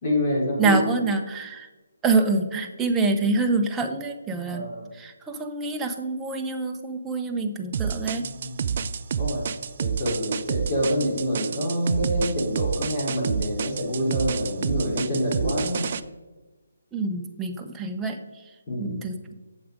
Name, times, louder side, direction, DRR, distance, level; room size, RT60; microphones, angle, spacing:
voice 1, 0.0-0.8 4.5-4.9 8.1-8.9 9.2-9.4 9.8-15.9 18.7-19.0, equal, 30° left, -4 dB, 3.5 m, -27 dB
voice 2, 0.6-1.7 2.0-4.7 4.9-8.2 16.9-18.2 18.8-19.3, right 3 dB, 10° right, 4 dB, 0.7 m, -26 dB
sound 1, 7.7-16.0, right 7 dB, 45° right, 0.4 m, -28 dB
7.8 x 7.2 x 5.1 m, 1.2 s
figure-of-eight pair, 155°, 0 cm